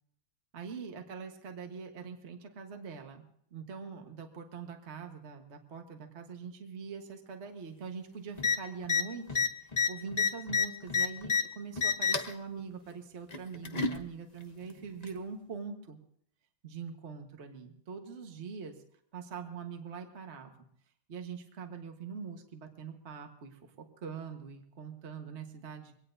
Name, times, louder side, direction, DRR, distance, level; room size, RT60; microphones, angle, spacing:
voice 1, 0.5-3.2 3.5-16.0 16.6-18.8 19.1-20.5 21.1-23.7 24.0-25.9, right 5 dB, 35° right, 4 dB, 1.5 m, -43 dB
sound 1, 8.4-8.6 8.8-9.0 9.3-11.4 11.8-12.3 13.3-14.0 15.0-15.1, left 5 dB, 40° left, 0.6 m, -28 dB
23.5 x 18.0 x 2.7 m, 0.69 s
omnidirectional pair, 2.3 m